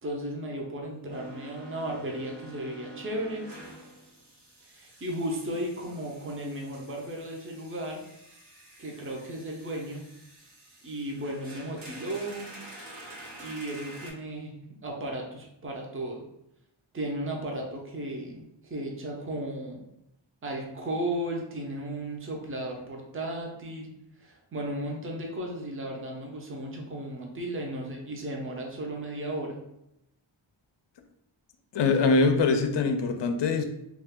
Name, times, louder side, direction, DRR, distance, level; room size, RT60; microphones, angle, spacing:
voice 1, 0.0-3.5 4.7-8.0 8.8-10.0 10.8-12.5 13.4-16.2 16.9-18.4 18.7-19.8 20.4-23.9 24.2-29.6, right 1 dB, 25° right, 0 dB, 0.6 m, -35 dB
sound 1, 1.1-14.1, right 1 dB, 90° right, 1.1 m, -48 dB
voice 2, 31.7-33.6, left 4 dB, 60° left, 6 dB, 0.5 m, -23 dB
2.4 x 2.4 x 3.5 m, 0.83 s
wide cardioid pair, 65°, 48 cm